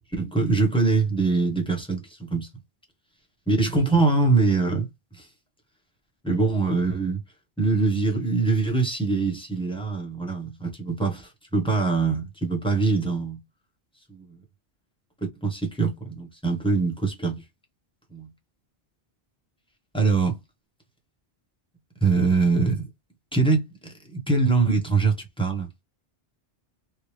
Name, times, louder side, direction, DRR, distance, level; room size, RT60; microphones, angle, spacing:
voice 1, 0.1-2.5 3.5-5.3 6.2-7.2 7.6-13.4 14.1-14.4 15.2-17.4 18.1-18.3 19.9-20.4 22.0-22.9 23.3-23.7 24.1-25.7, right 4 dB, 5° left, 1.1 m, -23 dB
3.2 x 2.4 x 3.2 m
omnidirectional pair, 1.1 m